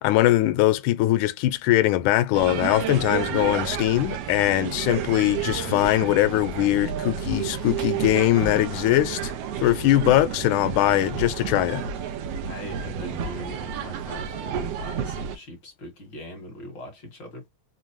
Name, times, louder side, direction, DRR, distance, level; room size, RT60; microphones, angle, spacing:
voice 1, 0.0-9.3 9.6-11.9, left 15 dB, 90° left, 2.1 m, -21 dB
sound 1, 2.3-15.4, right 7 dB, 70° right, 1.6 m, -31 dB
voice 2, 12.5-17.5, left 1 dB, 40° left, 2.3 m, -41 dB
5.5 x 2.6 x 2.9 m
omnidirectional pair, 3.4 m